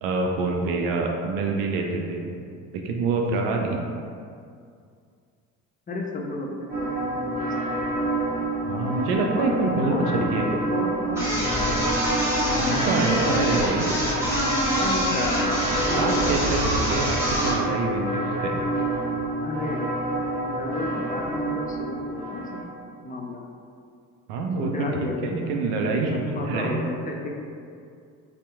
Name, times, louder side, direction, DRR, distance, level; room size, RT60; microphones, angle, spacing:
voice 1, 0.0-2.3 2.8-3.8 8.7-9.9 10.3-10.4 12.6-13.9 15.9-18.6 24.3-26.8, right 3 dB, 70° right, 1 dB, 0.5 m, -26 dB
voice 2, 5.9-8.1 9.3-12.6 14.8-16.7 19.4-19.9 20.5-22.4 23.0-23.4 24.6-25.5 26.1-27.3, left 2 dB, 20° left, 0 dB, 0.5 m, -33 dB
sound 1, 6.7-22.6, right 1 dB, 25° right, 1.4 m, -28 dB
sound 2, 11.2-17.6, equal, 5° right, 1.1 m, -25 dB
2.7 x 2.1 x 3.4 m, 2.3 s
hypercardioid pair, 60°, 40 cm